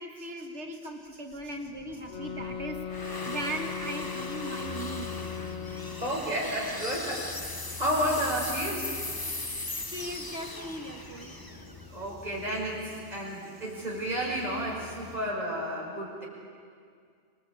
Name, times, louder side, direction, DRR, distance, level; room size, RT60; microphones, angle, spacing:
voice 1, 0.0-5.1 9.8-11.3, right 1 dB, 75° right, 4 dB, 2.6 m, -38 dB
sound 1, 1.4-12.6, left 2 dB, 20° left, 1.3 m, -39 dB
sound 2, 2.1-6.3, left 8 dB, 80° left, 1.8 m, -38 dB
sound 3, 4.6-15.2, left 5 dB, 55° right, 4.8 m, -47 dB
voice 2, 6.0-9.0 11.9-16.3, equal, 35° right, -4 dB, 5.7 m, -31 dB
27.5 x 24.5 x 8.6 m, 2.2 s
omnidirectional pair, 1.2 m